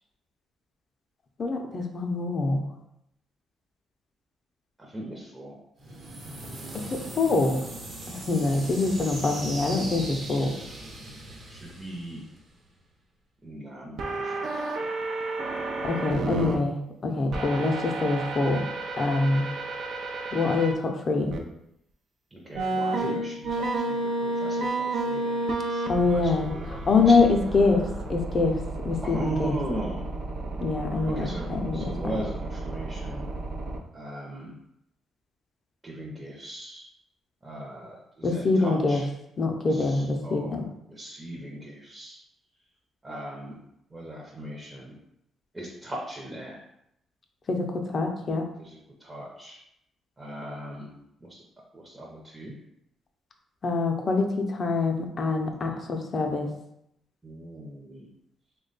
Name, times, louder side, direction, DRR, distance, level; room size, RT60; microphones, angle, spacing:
voice 1, 1.4-2.6 6.7-7.6 8.1-10.6 15.8-18.6 19.0-19.5 20.3-21.4 25.9-29.6 30.6-32.2 38.2-39.0 39.4-40.7 47.5-48.5 53.6-56.5, left 3 dB, 40° left, 3 dB, 0.5 m, -25 dB
voice 2, 4.8-5.6 11.5-12.2 13.4-14.9 22.3-27.2 29.0-30.0 31.1-31.4 31.7-33.3 33.9-34.5 35.8-36.8 37.4-39.1 39.7-40.6 40.9-42.2 43.0-43.6 43.9-45.0 45.5-46.6 48.6-49.6 50.2-51.4 51.7-52.5 55.5-55.6 57.2-58.1, right 1 dB, 20° right, -3 dB, 0.6 m, -38 dB
sound 1, 5.8-12.7, right 1 dB, 55° right, 0.9 m, -39 dB
sound 2, 14.0-16.5 17.3-20.7 21.3-21.4 22.5-33.8, right 2 dB, 70° right, 0.4 m, -31 dB
3.1 x 2.2 x 3.9 m, 0.80 s
cardioid pair, 90°, 0 cm